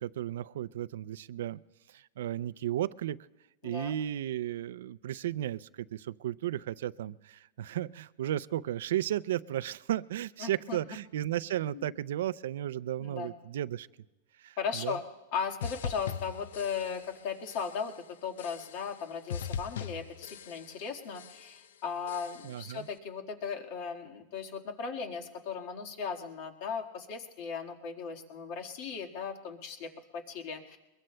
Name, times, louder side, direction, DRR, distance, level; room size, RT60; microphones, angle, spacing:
voice 1, 0.0-1.6 1.9-3.2 3.6-13.9 14.4-15.0 22.4-22.9, right 12 dB, 80° right, 18 dB, 0.4 m, -34 dB
voice 2, 3.6-3.9 10.4-10.8 11.7-11.9 13.0-13.3 14.6-15.0 15.3-17.9 18.2-30.8, left 6 dB, 55° left, 2 dB, 1.6 m, -37 dB
sound 1, 15.6-17.2 17.5-18.0 18.4-19.0 19.3-20.9 21.1-21.7 22.1-22.7, left 7 dB, 80° left, 0.5 m, -41 dB
22.5 x 22.0 x 2.2 m, 1.1 s
supercardioid pair, 145°, 0 cm